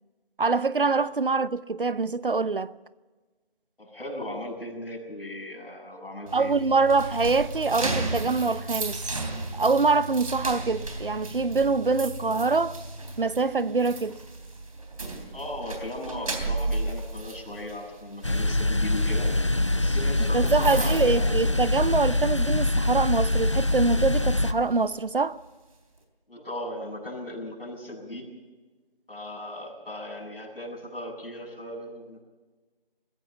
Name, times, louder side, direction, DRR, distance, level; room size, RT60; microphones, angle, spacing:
voice 1, 0.4-2.7 6.3-9.0 9.5-12.8 13.2-14.2 20.3-25.4, right 4 dB, 60° right, 0.8 m, -24 dB
voice 2, 3.8-6.5 15.3-19.3 19.7-21.5 26.3-28.3 29.1-32.2, left 1 dB, 70° left, 7.7 m, -37 dB
sound 1, 6.3-22.2 22.5-22.8 23.3-24.9, right 2 dB, 35° right, 3.3 m, -35 dB
sound 2, 18.2-24.5, left 1 dB, 30° left, 0.6 m, -24 dB
26.0 x 15.5 x 7.1 m
figure-of-eight pair, 170°, 30 cm